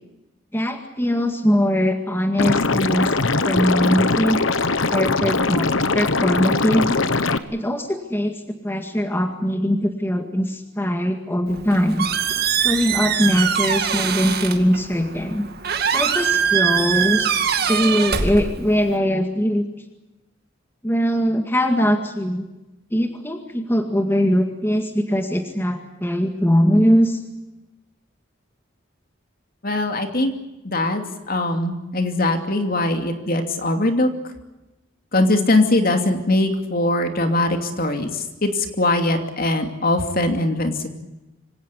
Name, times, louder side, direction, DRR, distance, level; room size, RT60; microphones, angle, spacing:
voice 1, 0.5-3.1 3.4-4.4 4.9-7.0 7.5-8.4 8.6-12.1 12.5-15.4 15.9-19.6 20.8-22.4 22.9-27.2, equal, 10° left, 5 dB, 2.0 m, -21 dB
Liquid, 2.4-7.4, left 3 dB, 75° left, 1.3 m, -21 dB
Squeak, 11.5-19.0, right 7 dB, 50° right, 2.2 m, -23 dB
voice 2, 29.6-30.3 30.6-34.1 35.1-38.5 38.8-40.7, left 2 dB, 45° left, 5 dB, 2.8 m, -21 dB
25.0 x 18.0 x 9.9 m, 1.0 s
head